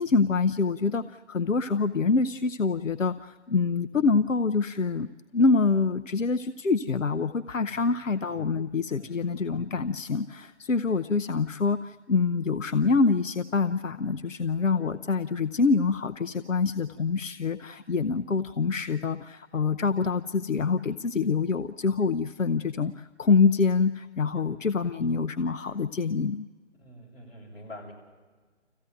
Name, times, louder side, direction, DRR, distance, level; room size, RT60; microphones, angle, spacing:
voice 1, 0.0-5.1 5.3-26.5, left 4 dB, 90° left, 11 dB, 0.8 m, -26 dB
voice 2, 24.3-24.6 26.8-27.9, equal, 50° left, -1 dB, 7.5 m, -46 dB
26.5 x 15.5 x 9.2 m, 1.4 s
figure-of-eight pair, 155°, 37 cm